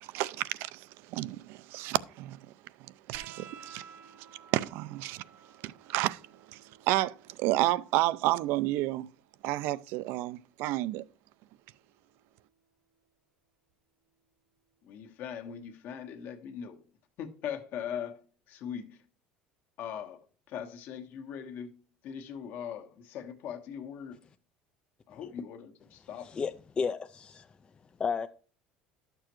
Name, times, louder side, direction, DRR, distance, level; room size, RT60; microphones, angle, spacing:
voice 1, 0.0-2.4 2.8-3.8 4.2-4.3 4.5-5.2 5.6-6.2 6.5-9.1 9.4-11.0, right 16 dB, 70° right, 0.4 m, -31 dB
sound 1, 3.1-10.2 11.6-12.4 13.7-13.8, right 7 dB, 50° right, 0.9 m, -55 dB
voice 2, 14.8-16.8 17.2-18.2 18.5-19.0 19.8-21.7 22.0-24.2 25.1-26.4, left 8 dB, 60° left, 1.3 m, -40 dB
voice 3, 26.2-27.5 28.0-28.3, left 5 dB, 25° left, 0.3 m, -32 dB
11.5 x 6.8 x 3.0 m
cardioid pair, 125°, 4 cm